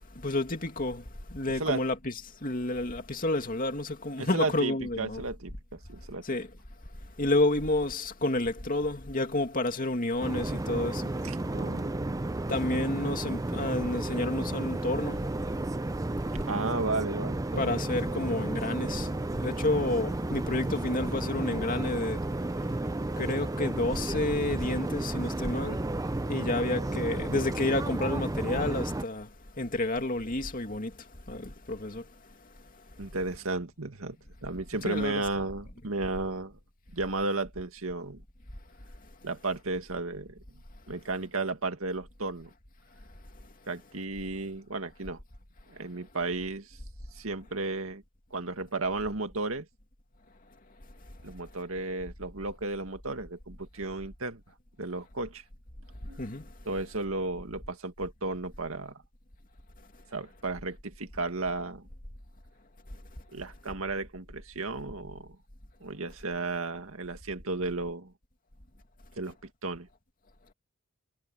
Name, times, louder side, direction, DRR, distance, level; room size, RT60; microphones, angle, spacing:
voice 1, 0.2-1.0 1.3-5.3 6.2-6.5 7.2-11.1 12.5-15.2 17.6-19.1 19.4-22.2 23.2-25.8 26.3-29.3 29.6-30.9 31.3-32.0 34.7-35.4 56.2-56.5, left 2 dB, 40° left, 2.4 m, -30 dB
voice 2, 4.2-6.2 11.2-12.2 16.5-17.9 33.0-34.2 34.4-36.6 36.9-38.2 39.2-40.4 40.9-42.5 43.7-45.2 45.7-46.8 47.1-48.0 48.3-49.7 51.2-54.4 54.8-55.4 56.1-56.2 56.7-59.0 60.1-61.9 63.3-65.4 65.8-68.1 69.2-69.9, right 3 dB, 90° right, 2.1 m, -34 dB
sound 1, 10.2-29.0, right 2 dB, 15° right, 0.5 m, -32 dB
head